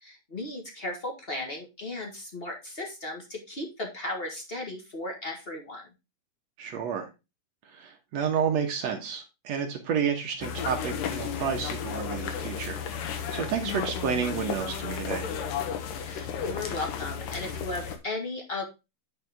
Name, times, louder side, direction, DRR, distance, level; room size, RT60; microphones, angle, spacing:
voice 1, 0.0-5.8 16.0-18.6, left 2 dB, 40° left, 1 dB, 0.7 m, -36 dB
voice 2, 6.6-7.1 7.7-15.3, right 7 dB, 60° right, 3 dB, 2.2 m, -30 dB
sound 1, 10.4-18.0, left 7 dB, 80° left, 2.7 m, -33 dB
9.6 x 5.0 x 3.5 m, 0.25 s
omnidirectional pair, 3.8 m